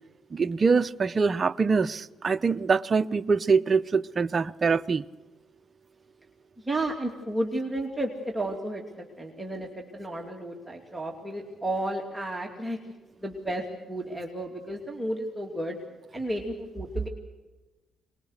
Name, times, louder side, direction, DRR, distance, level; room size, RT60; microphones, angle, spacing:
voice 1, 0.3-5.0, right 5 dB, 35° right, 0.6 m, -24 dB
voice 2, 6.6-12.8 13.2-15.8 16.1-17.1, right 1 dB, 10° right, 2.7 m, -32 dB
23.5 x 21.0 x 6.6 m
cardioid pair, 90°, 0 cm